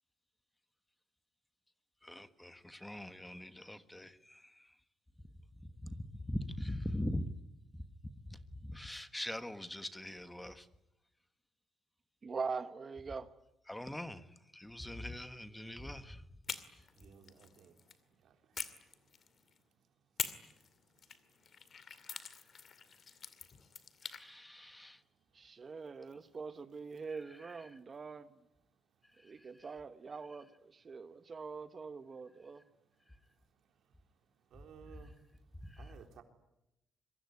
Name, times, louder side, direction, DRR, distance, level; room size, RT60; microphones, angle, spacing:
voice 1, 2.1-4.1 5.8-7.2 8.7-10.6 13.7-14.2 14.6-16.2 24.2-25.0, left 1 dB, 5° left, 1.3 m, -41 dB
voice 2, 12.2-13.3 25.3-28.4 29.2-32.6, right 5 dB, 25° right, 1.2 m, -43 dB
sound 1, 16.4-18.0 18.5-19.6 20.2-24.2, left 6 dB, 35° left, 2.3 m, -45 dB
voice 3, 17.0-17.7 18.2-18.3 34.5-35.1 35.8-36.2, right 8 dB, 65° right, 3.8 m, -56 dB
26.0 x 23.5 x 9.6 m
cardioid pair, 175°, 0 cm